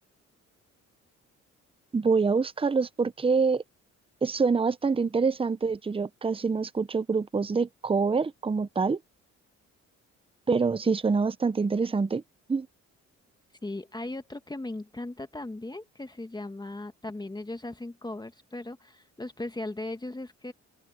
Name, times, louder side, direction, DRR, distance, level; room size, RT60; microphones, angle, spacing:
voice 1, 1.9-3.6 4.2-9.0 10.5-12.2 12.5-12.7, right 4 dB, 20° right, 0.8 m, -26 dB
voice 2, 13.6-20.5, left 2 dB, 15° left, 1.5 m, -38 dB
open air
cardioid pair, 90°, 30 cm